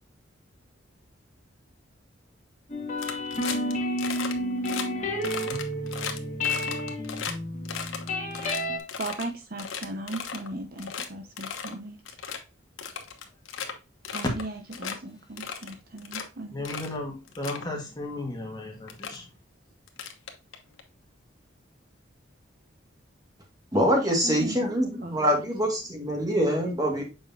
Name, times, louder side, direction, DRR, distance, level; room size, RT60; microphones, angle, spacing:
sound 1, 2.7-8.8, left 1 dB, 35° left, 1.8 m, -30 dB
sound 2, 3.0-3.7 4.0-4.3 4.6-4.8 5.2-7.3 7.6-9.2 9.6-10.5 10.8-11.1 11.4-11.7 12.0-12.4 12.8-13.7 14.0-14.4 14.7-15.0 15.4-16.2 16.6-16.9 17.3-17.6 18.5-18.6 18.9-19.2 19.9-20.8, left 7 dB, 85° left, 1.1 m, -35 dB
voice 1, 9.0-12.0 14.1-16.7 23.8-25.3, right 1 dB, 45° right, 5 dB, 0.8 m, -37 dB
voice 2, 16.5-19.3, left 2 dB, 20° left, 1 dB, 1.7 m, -35 dB
voice 3, 23.7-27.0, equal, 20° right, 1 dB, 1.9 m, -24 dB
7.5 x 5.1 x 2.7 m, 0.29 s
head